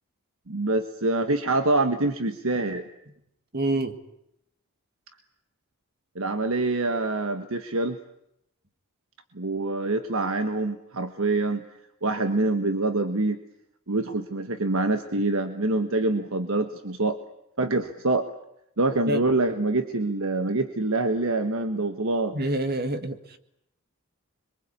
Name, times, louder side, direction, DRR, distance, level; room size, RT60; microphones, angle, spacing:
voice 1, 0.5-2.8 6.1-8.0 9.3-11.6 12.0-13.4 13.9-17.2 17.6-18.3 18.8-22.4, right 2 dB, 70° right, 8 dB, 1.4 m, -25 dB
voice 2, 3.5-4.0 19.1-19.2 22.3-23.4, right 1 dB, 50° right, 9 dB, 1.9 m, -27 dB
26.5 x 23.0 x 8.4 m, 0.79 s
head